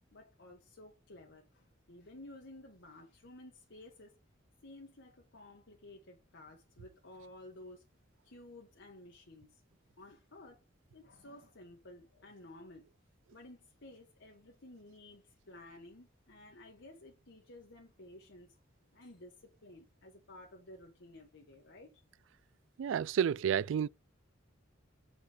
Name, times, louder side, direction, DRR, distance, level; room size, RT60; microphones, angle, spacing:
voice 1, 0.1-4.1 4.6-7.9 8.2-9.6 10.0-10.6 10.9-12.8 13.3-18.6 18.9-22.0, left 1 dB, 65° left, 1.3 m, -54 dB
voice 2, 22.8-23.9, right 8 dB, 70° right, 0.3 m, -30 dB
7.0 x 4.7 x 5.0 m
head